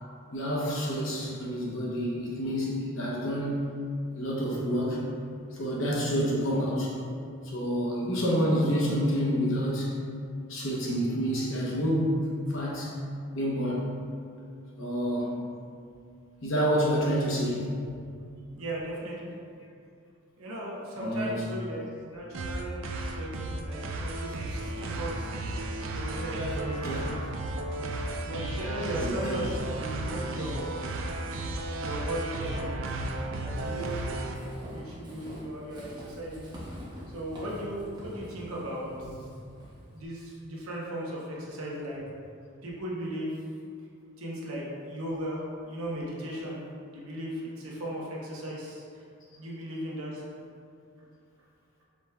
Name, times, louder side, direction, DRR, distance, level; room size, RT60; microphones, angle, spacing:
voice 1, 0.3-3.8 4.2-5.0 5.5-6.9 7.4-10.0 10.5-13.0 13.3-13.8 14.8-15.4 16.4-17.7 20.9-21.5 26.8-27.0 29.0-29.4, equal, 60° left, -4 dB, 0.8 m, -28 dB
voice 2, 18.5-19.3 20.4-25.3 25.9-27.2 28.2-31.1 31.8-32.8 33.4-34.0 34.7-36.5 37.1-39.1 39.9-42.0 42.6-43.4 44.2-46.6 46.9-49.0 49.4-50.2, equal, 80° right, -4 dB, 0.8 m, -37 dB
sound 1, 22.3-34.3, right 2 dB, 65° right, 0.3 m, -34 dB
Walk footsteps / Squeak, 30.5-40.1, equal, 20° right, 0.6 m, -46 dB
5.0 x 3.3 x 2.2 m, 2.3 s
head